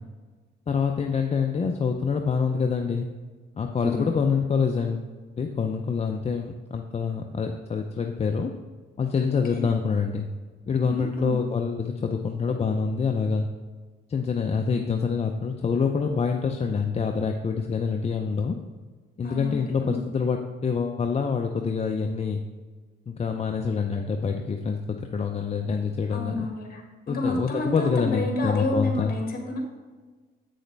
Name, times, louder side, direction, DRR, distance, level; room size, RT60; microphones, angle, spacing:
voice 1, 0.7-3.1 3.6-5.1 5.4-8.5 9.0-10.3 10.7-13.5 14.1-18.6 19.2-22.4 23.1-26.5 27.1-29.2, left 5 dB, 30° left, 3 dB, 0.6 m, -26 dB
voice 2, 3.8-4.2 9.5-9.6 10.8-11.4 19.2-20.0 26.1-29.6, left 1 dB, 50° left, 2 dB, 1.8 m, -30 dB
8.1 x 6.3 x 3.3 m, 1.4 s
cardioid pair, 90°, 20 cm